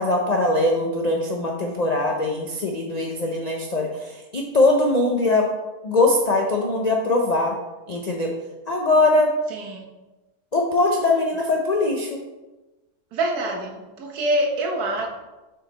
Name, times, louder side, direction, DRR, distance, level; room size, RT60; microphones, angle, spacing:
voice 1, 0.0-5.5 5.8-7.6 7.9-8.3 8.7-9.3 10.5-12.2, left 2 dB, 60° left, 0 dB, 0.4 m, -21 dB
voice 2, 9.5-9.8 13.1-15.1, right 1 dB, 80° right, 1 dB, 1.5 m, -25 dB
6.4 x 4.7 x 4.0 m, 1.1 s
omnidirectional pair, 1.6 m